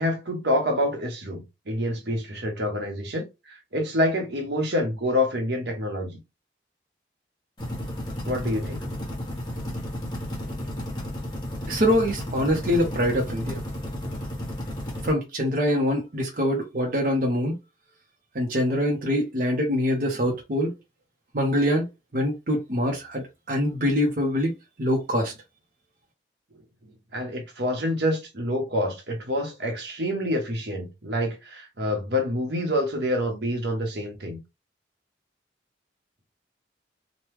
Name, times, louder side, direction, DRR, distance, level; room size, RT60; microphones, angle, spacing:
voice 1, 0.0-6.2 8.3-8.8 10.4-10.6 27.1-34.4, left 1 dB, 75° right, 1.0 m, -27 dB
sound 1, 7.6-15.1, equal, 25° left, 1.0 m, -33 dB
voice 2, 11.7-13.6 15.0-17.5 18.3-20.7 21.3-21.9 22.1-24.5 24.8-25.3, equal, 50° right, 0.7 m, -24 dB
3.0 x 2.2 x 3.3 m
head